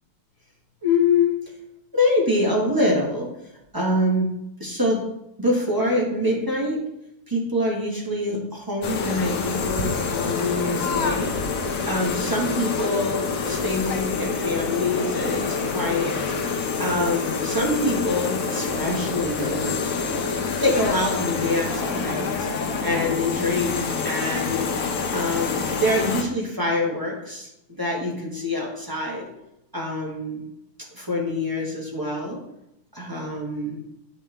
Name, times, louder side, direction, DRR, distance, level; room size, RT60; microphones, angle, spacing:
voice 1, 0.8-1.3 1.9-3.3 3.7-4.3 4.6-5.1 5.4-6.8 7.3-15.4 15.7-16.2 16.5-22.3 22.8-24.7 25.1-27.5 27.8-29.2 29.7-30.4 30.9-32.4 32.9-33.8, left 2 dB, 15° right, -3 dB, 1.4 m, -25 dB
sound 1, 8.8-26.2, left 5 dB, 65° left, 1.1 m, -27 dB
8.7 x 4.3 x 3.4 m, 0.84 s
omnidirectional pair, 1.6 m